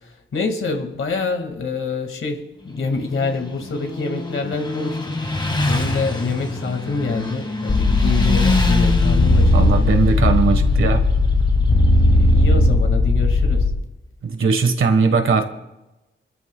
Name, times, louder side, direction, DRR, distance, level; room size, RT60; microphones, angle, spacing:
voice 1, 0.3-5.2 5.6-9.8 12.1-13.7, left 4 dB, 85° left, 4 dB, 2.1 m, -26 dB
Motorcycle, 2.6-12.4, left 2 dB, 20° left, 1.9 m, -26 dB
sound 1, 7.7-13.7, left 2 dB, 45° left, 2.5 m, -16 dB
voice 2, 9.5-11.0 14.2-15.4, right 5 dB, 80° right, 7 dB, 1.5 m, -19 dB
26.0 x 13.5 x 2.3 m, 1.0 s
wide cardioid pair, 105°, 20 cm